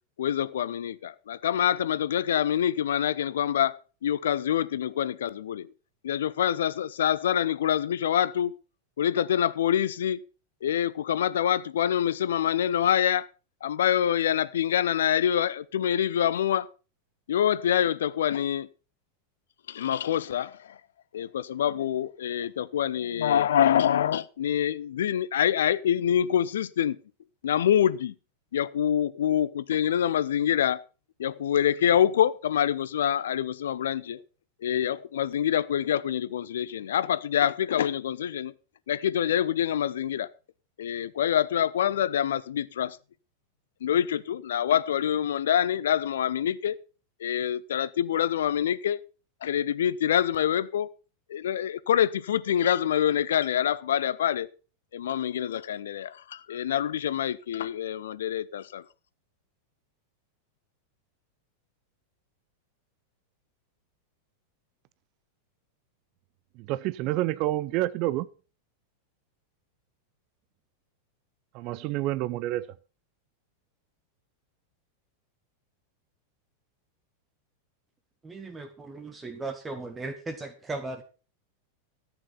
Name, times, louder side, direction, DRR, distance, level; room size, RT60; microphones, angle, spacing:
voice 1, 0.2-5.7 6.0-8.5 9.0-10.2 10.6-13.3 13.6-16.7 17.3-18.7 19.7-20.8 21.1-27.0 27.4-28.1 28.5-30.8 31.2-34.2 34.6-38.5 38.9-40.3 40.8-43.0 43.8-46.8 47.2-49.0 49.4-50.9 51.3-54.5 54.9-58.8, left 10 dB, 60° left, 0.7 m, -26 dB
voice 2, 66.6-68.3 71.5-72.7, right 16 dB, 40° right, 0.6 m, -28 dB
voice 3, 78.2-81.0, right 3 dB, 15° right, 1.5 m, -37 dB
13.5 x 9.1 x 5.8 m
figure-of-eight pair, 90°, 0 cm